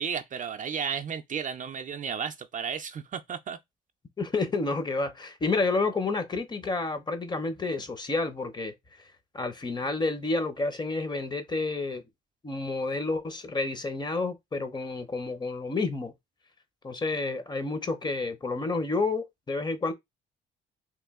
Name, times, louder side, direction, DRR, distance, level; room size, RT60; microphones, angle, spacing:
voice 1, 0.0-3.6, right 7 dB, 40° right, 0.4 m, -33 dB
voice 2, 4.2-8.7 9.3-12.0 12.4-16.1 16.8-19.9, left 3 dB, 20° left, 0.7 m, -30 dB
3.0 x 2.4 x 3.5 m
cardioid pair, 90°, 20 cm